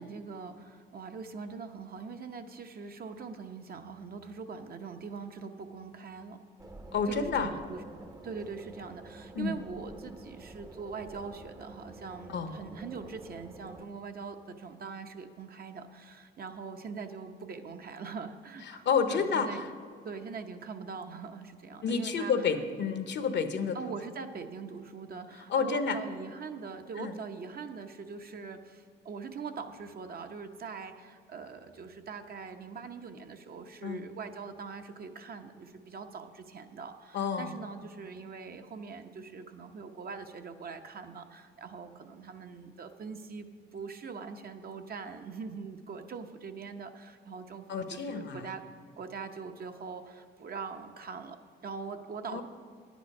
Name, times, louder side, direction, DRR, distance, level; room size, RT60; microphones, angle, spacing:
voice 1, 0.0-6.4 7.1-7.8 8.2-19.6 20.0-22.5 23.7-48.6 49.0-52.4, right 5 dB, 50° right, 6 dB, 0.9 m, -42 dB
sound 1, 6.6-13.9, right 2 dB, 15° right, 0.7 m, -49 dB
voice 2, 6.9-7.5 9.4-9.6 12.3-12.5 18.7-19.7 21.8-23.8 25.5-26.0 27.0-27.1 33.8-34.0 37.1-37.5 47.7-48.5 52.3-52.4, left 5 dB, 65° left, 9 dB, 0.9 m, -30 dB
10.5 x 9.3 x 5.4 m, 2.1 s
cardioid pair, 90°, 20 cm